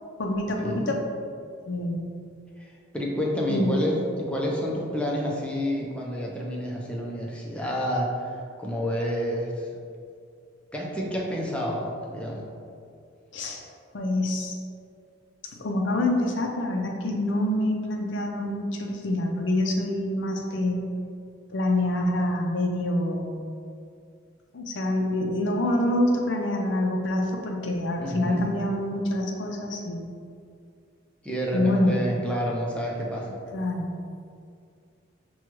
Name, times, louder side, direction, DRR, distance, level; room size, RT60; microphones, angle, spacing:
voice 1, 0.2-1.0 1.7-2.0 3.5-3.8 13.3-13.6 13.9-14.6 15.6-20.8 21.5-23.3 24.5-30.0 31.5-32.0 33.5-33.9, left 1 dB, 70° left, 1 dB, 0.5 m, -26 dB
voice 2, 2.6-8.3 8.6-9.7 10.7-12.5 28.0-28.5 31.2-33.4, equal, 5° left, -3 dB, 0.5 m, -29 dB
6.0 x 2.3 x 3.0 m, 2.3 s
head